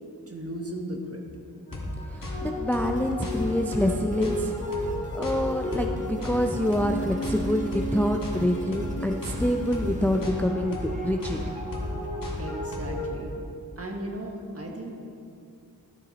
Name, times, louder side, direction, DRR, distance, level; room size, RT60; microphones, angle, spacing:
voice 1, 0.3-1.2 12.4-13.3 13.8-14.9, right 1 dB, 40° right, 1 dB, 1.3 m, -36 dB
sound 1, 1.7-13.1, left 1 dB, 60° left, 1.8 m, -32 dB
voice 2, 2.1-4.6 5.1-11.5, equal, 5° left, 4 dB, 0.4 m, -26 dB
sound 2, 2.7-12.2, right 1 dB, 20° right, 1.1 m, -47 dB
12.5 x 5.9 x 4.0 m, 2.6 s
wide cardioid pair, 45°, 38 cm